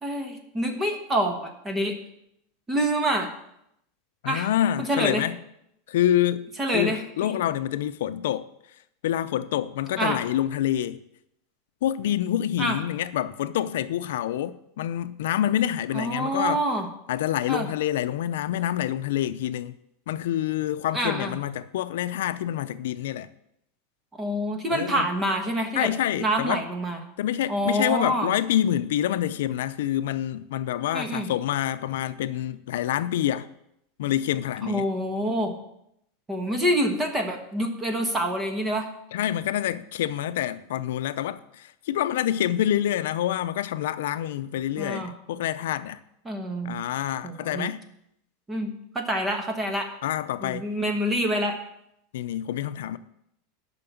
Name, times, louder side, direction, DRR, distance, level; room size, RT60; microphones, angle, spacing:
voice 1, 0.0-2.0 2.7-3.3 4.3-4.5 4.8-5.2 6.6-7.4 10.0-10.2 12.6-12.8 15.9-16.9 17.5-17.7 20.9-21.4 24.2-25.9 26.2-27.0 27.5-28.3 30.9-31.3 34.6-35.5 36.3-38.9 44.8-45.1 46.2-46.8 47.2-47.7 48.5-48.7 48.9-49.9 50.4-51.6, right 1 dB, 10° right, 1.2 m, -26 dB
voice 2, 4.2-5.4 5.9-6.4 6.7-8.5 9.0-11.0 11.8-16.6 17.1-19.7 20.1-23.3 24.7-25.1 25.8-26.6 27.2-33.5 34.0-34.9 39.1-46.0 46.6-47.8 50.0-50.7 52.1-53.0, left 11 dB, 80° left, 0.5 m, -27 dB
10.5 x 5.9 x 7.1 m
supercardioid pair, 170°, 0 cm